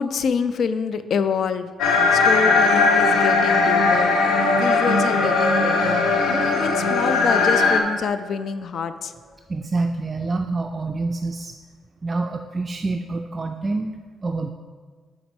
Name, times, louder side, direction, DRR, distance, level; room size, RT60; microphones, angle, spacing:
voice 1, 0.0-9.1, left 6 dB, 60° left, 11 dB, 0.4 m, -27 dB
sound 1, 1.8-7.8, left 3 dB, 75° left, 0.8 m, -19 dB
sound 2, 5.2-9.3, left 1 dB, ahead, 1.1 m, -32 dB
voice 2, 9.5-11.6 12.0-13.9 14.2-14.5, right 3 dB, 30° right, 4 dB, 0.4 m, -26 dB
5.9 x 5.2 x 6.1 m, 1.5 s
cardioid pair, 90°, 0 cm